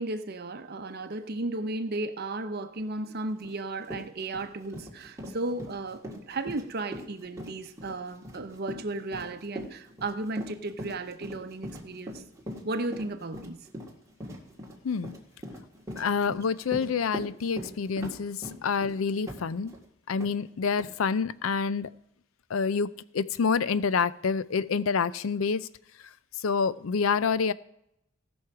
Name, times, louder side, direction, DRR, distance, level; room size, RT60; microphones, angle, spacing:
voice 1, 0.0-12.2 12.6-13.6, right 2 dB, 50° right, 0.9 m, -34 dB
Run, 3.4-3.5 3.8-19.8 20.2-20.3 20.8-20.9, equal, 15° right, 2.0 m, -41 dB
voice 2, 16.0-19.7 20.1-21.9 22.5-25.7 26.4-27.5, left 5 dB, 80° left, 0.5 m, -27 dB
17.0 x 6.3 x 4.8 m
head